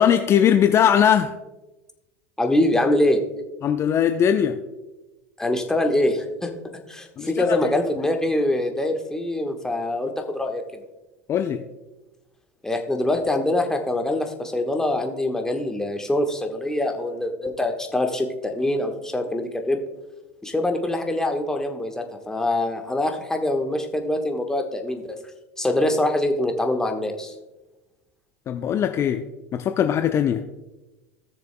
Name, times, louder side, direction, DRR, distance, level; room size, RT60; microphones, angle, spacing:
voice 1, 0.0-1.3 3.6-4.6 7.2-7.7 11.3-11.7 28.5-30.4, left 9 dB, 35° left, 7 dB, 0.6 m, -20 dB
voice 2, 2.4-3.2 5.4-6.5 6.9-10.6 12.6-19.8 20.4-25.0 25.6-27.3, left 1 dB, 5° left, 4 dB, 1.3 m, -24 dB
17.5 x 6.7 x 2.2 m, 1.1 s
hypercardioid pair, 80°, 8 cm